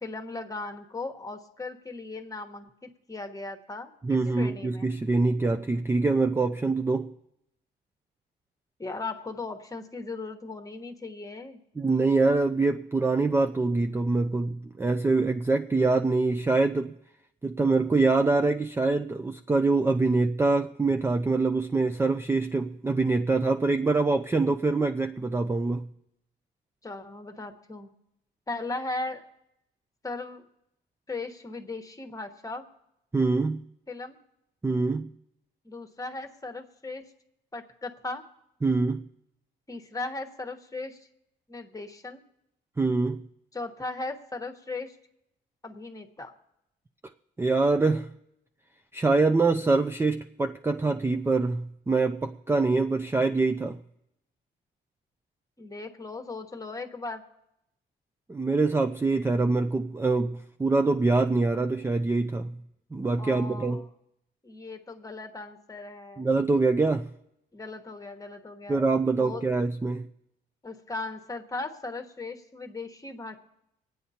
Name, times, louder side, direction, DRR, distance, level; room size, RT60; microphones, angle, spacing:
voice 1, 0.0-4.9 8.8-11.6 26.8-27.9 28.5-29.3 30.0-30.4 31.1-32.6 33.9-34.2 35.6-37.1 37.5-38.3 39.7-41.1 41.5-42.2 43.5-45.0 45.6-46.4 55.6-57.2 63.2-63.9 64.4-66.3 67.5-68.8 69.2-69.4 70.6-73.4, left 3 dB, 15° left, 1.2 m, -37 dB
voice 2, 4.0-7.1 11.8-16.9 17.4-25.8 33.1-33.6 34.6-35.1 38.6-39.1 42.8-43.3 47.4-48.1 48.9-53.8 58.3-62.6 62.9-63.8 66.2-67.1 68.7-70.1, right 3 dB, 10° right, 0.4 m, -24 dB
24.0 x 9.1 x 2.8 m
cardioid pair, 90°, 20 cm